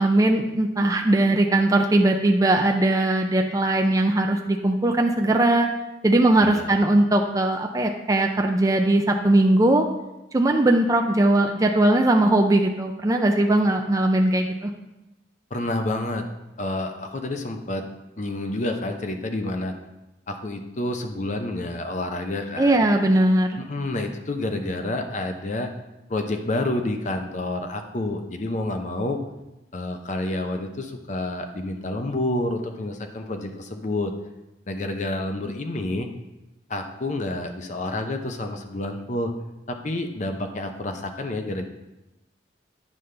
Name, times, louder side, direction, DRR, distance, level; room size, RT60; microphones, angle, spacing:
voice 1, 0.0-5.7 6.0-9.8 10.3-14.7 22.6-23.6, right 1 dB, 20° right, 3 dB, 0.4 m, -20 dB
voice 2, 6.4-6.8 15.5-16.3 16.6-17.9 18.2-19.7 20.3-22.8 23.6-25.7 26.1-29.2 29.7-34.1 34.7-36.1 36.7-39.3 39.7-41.7, left 2 dB, 40° left, 5 dB, 0.7 m, -29 dB
9.5 x 5.3 x 3.3 m, 0.98 s
head